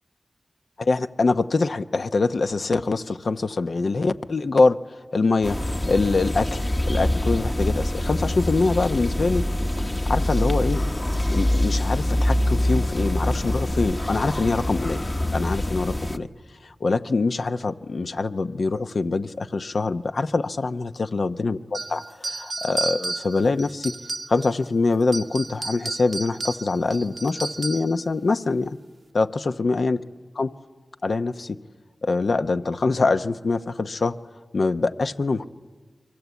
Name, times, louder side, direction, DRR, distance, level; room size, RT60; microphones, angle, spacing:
voice 1, 0.8-9.6 10.1-10.8 11.3-15.0 15.3-16.3 16.6-23.9 24.3-28.8 29.1-30.0 30.3-30.5 31.0-31.6 32.0-34.1 34.5-35.5, left 3 dB, 70° left, 9 dB, 0.9 m, -24 dB
sound 1, 5.4-16.2, left 1 dB, 30° left, 1.1 m, -24 dB
sound 2, 21.7-24.6 25.0-28.0, right 3 dB, 55° right, 0.7 m, -32 dB
29.0 x 24.0 x 8.3 m, 1.4 s
wide cardioid pair, 60°, 0 cm